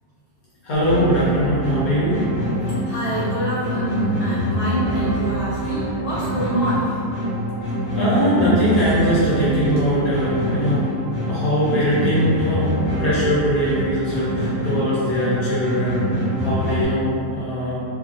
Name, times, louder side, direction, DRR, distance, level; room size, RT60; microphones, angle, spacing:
voice 1, 0.6-2.2 7.9-10.9 11.3-17.8, equal, 60° left, -10 dB, 1.1 m, -21 dB
sound 1, 0.8-16.8, equal, 30° left, 1.4 m, -25 dB
voice 2, 2.8-7.0, right 1 dB, 80° left, -13 dB, 0.5 m, -26 dB
3.3 x 2.5 x 2.5 m, 2.5 s
omnidirectional pair, 2.1 m